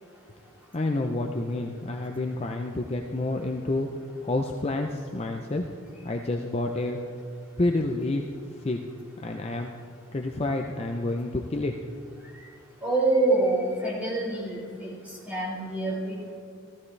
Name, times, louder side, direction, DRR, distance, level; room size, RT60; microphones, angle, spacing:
voice 1, 0.7-3.9 4.2-5.7 6.0-7.0 7.6-8.3 8.6-8.8 9.2-9.7 10.1-11.7, left 2 dB, 30° left, 3 dB, 0.5 m, -29 dB
voice 2, 12.8-14.9 15.3-16.2, right 2 dB, 5° right, -7 dB, 3.9 m, -26 dB
15.0 x 14.5 x 3.3 m, 2.3 s
head